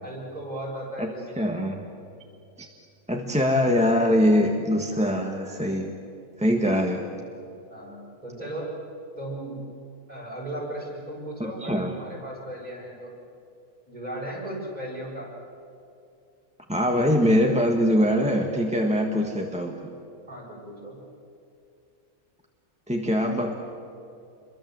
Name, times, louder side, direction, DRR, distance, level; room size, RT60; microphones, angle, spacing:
voice 1, 0.0-1.5 4.9-5.0 7.7-8.7 9.2-9.6 10.1-13.2 13.9-15.3 20.3-21.0, right 1 dB, 30° right, -3 dB, 7.4 m, -36 dB
voice 2, 1.0-1.8 2.6-2.7 3.1-5.9 6.4-7.1 11.4-11.9 16.7-19.7 22.9-23.5, equal, 5° right, 1 dB, 1.4 m, -23 dB
28.0 x 23.0 x 7.9 m, 2.5 s
omnidirectional pair, 1.4 m